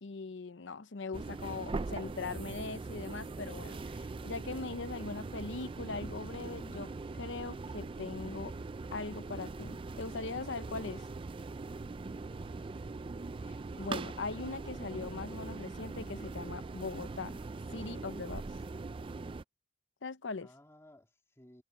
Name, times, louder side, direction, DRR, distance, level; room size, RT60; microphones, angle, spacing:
voice 1, 0.0-8.5 8.9-11.0 13.4-17.4 17.7-18.4 20.0-20.5, left 4 dB, 80° left, 0.8 m, -41 dB
sound 1, 1.1-19.4, right 3 dB, 30° right, 0.4 m, -41 dB
voice 2, 12.1-13.0 20.4-21.6, left 1 dB, 15° left, 2.7 m, -59 dB
head